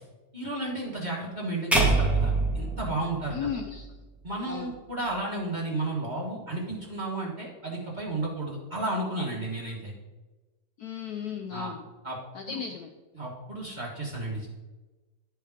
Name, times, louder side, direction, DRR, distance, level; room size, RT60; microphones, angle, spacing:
voice 1, 0.3-3.5 4.2-9.9 11.5-11.7 12.0-12.2 12.5-12.6 13.1-14.5, right 2 dB, 30° right, -5 dB, 1.2 m, -33 dB
sound 1, 1.7-4.0, right 2 dB, ahead, 0.7 m, -25 dB
voice 2, 3.3-3.9 4.5-4.7 10.8-11.8 12.3-12.9, left 7 dB, 70° left, 4 dB, 1.0 m, -35 dB
11.5 x 4.6 x 3.5 m, 1.2 s
omnidirectional pair, 2.0 m